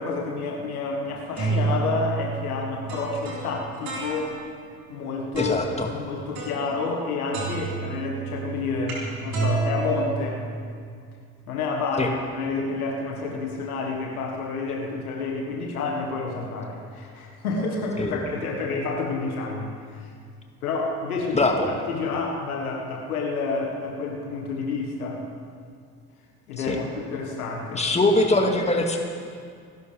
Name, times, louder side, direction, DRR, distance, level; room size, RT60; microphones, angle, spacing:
voice 1, 0.0-4.3 4.9-5.6 5.9-10.4 11.5-20.1 20.6-21.5 21.9-25.2 26.5-27.8, left 3 dB, 80° left, 0 dB, 1.7 m, -29 dB
sound 1, 1.1-4.6 5.3-5.8 6.4-7.1 7.3-10.8, right 3 dB, 55° right, 4.3 m, -30 dB
voice 2, 5.4-5.9 12.0-12.1 18.0-18.1 21.3-21.7 26.7-26.8 27.7-29.0, left 2 dB, 15° left, 2 dB, 2.1 m, -22 dB
27.0 x 12.0 x 3.4 m, 2.2 s
figure-of-eight pair, 50°, 43 cm